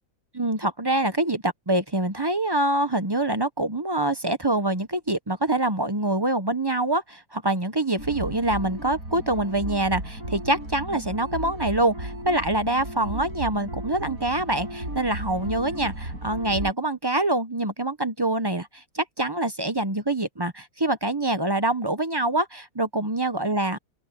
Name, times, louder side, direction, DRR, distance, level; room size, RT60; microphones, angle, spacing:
voice 1, 0.3-23.8, right 2 dB, 20° right, 0.7 m, -25 dB
sound 1, 8.0-16.7, right 1 dB, 75° right, 8.6 m, -35 dB
open air
omnidirectional pair, 1.5 m